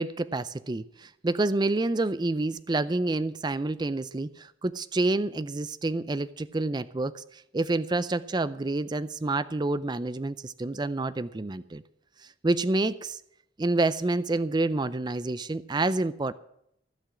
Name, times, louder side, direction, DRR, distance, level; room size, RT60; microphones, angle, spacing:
voice 1, 0.0-11.8 12.4-13.2 13.6-16.3, right 2 dB, 20° right, 14 dB, 0.4 m, -28 dB
15.5 x 6.0 x 9.7 m, 0.76 s
head